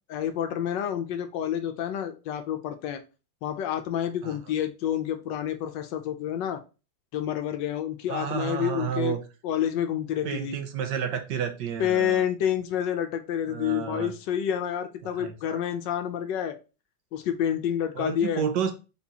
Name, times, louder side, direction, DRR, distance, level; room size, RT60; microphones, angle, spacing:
voice 1, 0.1-3.0 3.4-6.6 7.1-9.2 9.4-10.6 11.8-16.6 17.1-18.4, left 10 dB, 75° left, 1.2 m, -28 dB
voice 2, 8.1-9.2 10.2-12.2 13.5-14.1 15.0-15.6 17.9-18.7, right 8 dB, 70° right, 1.3 m, -31 dB
4.4 x 3.9 x 2.8 m
omnidirectional pair, 2.1 m